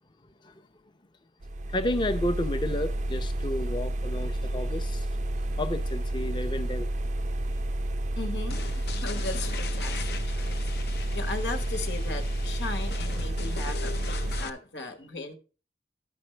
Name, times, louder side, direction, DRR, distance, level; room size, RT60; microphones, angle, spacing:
sound 1, 1.4-14.5, right 1 dB, 45° right, 0.4 m, -30 dB
voice 1, 1.7-5.1 5.6-6.9, left 1 dB, 25° left, 0.6 m, -31 dB
voice 2, 8.2-10.1 10.4-10.7 11.1-15.4, left 3 dB, 90° left, 1.3 m, -37 dB
sound 2, 8.5-14.5, left 5 dB, 65° left, 0.6 m, -40 dB
13.5 x 5.2 x 3.3 m
head